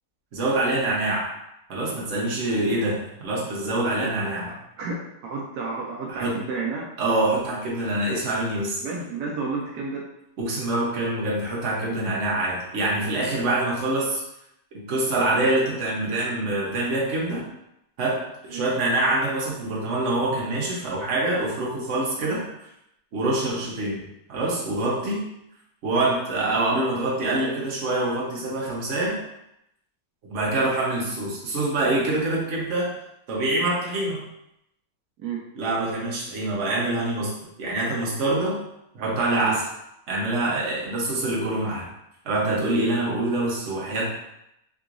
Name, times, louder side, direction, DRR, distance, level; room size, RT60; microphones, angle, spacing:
voice 1, 0.3-1.3 1.7-4.5 6.1-6.4 7.0-8.8 10.4-14.2 14.7-17.4 18.0-22.4 23.1-25.2 25.8-29.2 30.3-32.9 33.3-34.2 35.6-37.3 37.6-38.6 38.9-39.6 40.1-41.9 42.2-44.1, right 2 dB, 55° right, -4 dB, 1.1 m, -25 dB
voice 2, 4.5-6.9 8.8-10.0 18.5-18.6 22.2-22.3 35.2-35.4 39.4-39.6, right 4 dB, 80° right, -2 dB, 1.1 m, -31 dB
3.7 x 2.9 x 2.5 m, 0.82 s
omnidirectional pair, 1.6 m